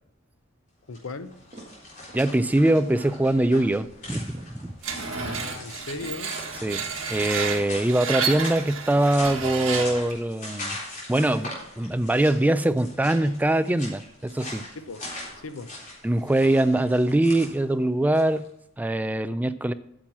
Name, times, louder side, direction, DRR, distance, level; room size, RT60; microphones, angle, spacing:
sound 1, 0.8-18.5, left 1 dB, 40° left, 3.8 m, -41 dB
voice 1, 0.9-1.4 5.0-6.4 14.7-15.1 15.4-15.7, left 3 dB, 85° left, 0.7 m, -37 dB
sound 2, 1.0-1.2 1.5-2.3 2.7-2.8 3.2-3.4 3.8-4.0 4.3-4.6 4.9-5.2 5.5-8.5 8.9-9.1, right 1 dB, 35° right, 1.5 m, -48 dB
voice 2, 2.1-4.7 6.6-10.8 11.1-14.6 16.0-18.5 18.8-19.7, right 1 dB, 10° right, 0.3 m, -23 dB
Screech, 4.8-10.1, right 6 dB, 80° right, 1.5 m, -31 dB
8.9 x 7.2 x 6.1 m
head